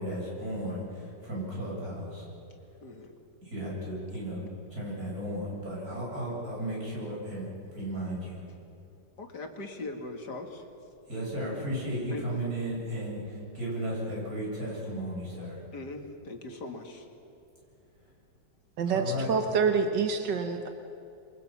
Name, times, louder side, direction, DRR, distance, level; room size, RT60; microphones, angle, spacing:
voice 1, 0.0-2.3 3.4-8.4 11.1-15.6 18.8-19.3, equal, 55° right, -5 dB, 8.4 m, -35 dB
voice 2, 2.8-3.1 9.2-10.7 12.1-12.3 15.7-17.1, left 2 dB, 70° left, 4 dB, 2.6 m, -40 dB
voice 3, 18.8-20.7, right 5 dB, 85° right, 6 dB, 1.8 m, -27 dB
28.0 x 23.0 x 6.0 m, 2.8 s
omnidirectional pair, 1.9 m